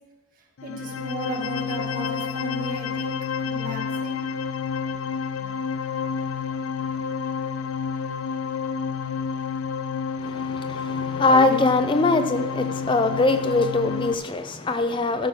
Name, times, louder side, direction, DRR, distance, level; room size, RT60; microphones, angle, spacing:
sound 1, 0.6-14.1, left 6 dB, 90° left, 0.4 m, -29 dB
voice 1, 0.6-3.2 3.4-4.2 5.4-5.5, right 2 dB, 45° right, 1.9 m, -35 dB
voice 2, 10.2-15.3, left 3 dB, 25° left, 0.4 m, -22 dB
13.5 x 6.0 x 6.2 m
head